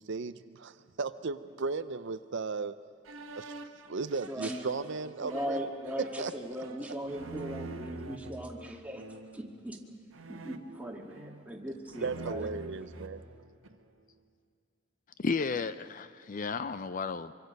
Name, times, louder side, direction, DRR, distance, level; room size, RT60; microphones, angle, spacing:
voice 1, 0.0-2.7 3.3-3.5 3.9-5.6 6.2-6.3 12.0-13.2, right 4 dB, 65° right, 0.6 m, -35 dB
sound 1, 3.0-8.3 8.9-9.5 10.1-11.6 11.9-13.9, right 2 dB, 85° right, 1.4 m, -46 dB
voice 2, 4.3-4.8 5.2-9.0 9.3-9.8 10.3-12.5, equal, 5° right, 2.0 m, -39 dB
voice 3, 15.2-17.3, left 4 dB, 40° left, 0.5 m, -33 dB
25.0 x 24.5 x 5.3 m
head